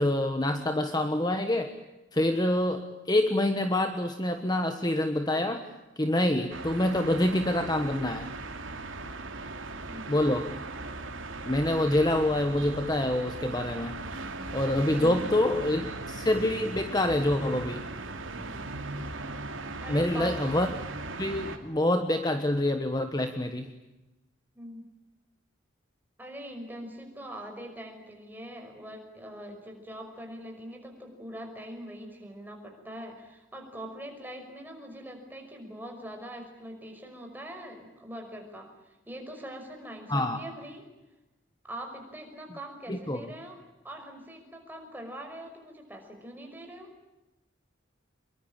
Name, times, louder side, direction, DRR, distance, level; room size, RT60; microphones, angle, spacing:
voice 1, 0.0-1.7 2.1-5.7 6.0-8.3 10.1-10.5 11.4-14.0 14.5-17.9 19.9-20.7 21.2-23.7 40.1-40.4 42.9-43.3, left 1 dB, 20° left, 7 dB, 1.3 m, -26 dB
sound 1, 6.5-21.6, right 2 dB, 85° right, 2.9 m, -38 dB
voice 2, 9.9-10.3 14.9-15.9 18.4-18.7 19.8-20.3 24.5-24.8 26.2-40.8 41.6-43.6 43.8-46.9, equal, 10° right, 3 dB, 5.5 m, -43 dB
25.5 x 23.0 x 8.9 m, 1.0 s
head